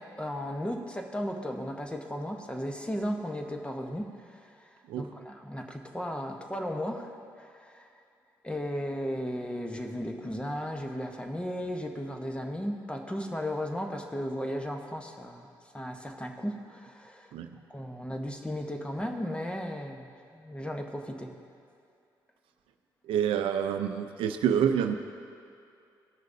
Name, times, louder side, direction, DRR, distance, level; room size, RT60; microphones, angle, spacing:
voice 1, 0.0-4.7 5.0-7.1 7.4-7.9 8.4-15.5 15.7-17.3 17.7-21.3, equal, 10° left, 3 dB, 1.1 m, -35 dB
voice 2, 23.0-24.9, right 8 dB, 80° right, 7 dB, 0.5 m, -27 dB
17.0 x 6.3 x 2.7 m, 2.5 s
supercardioid pair, 65°, 9 cm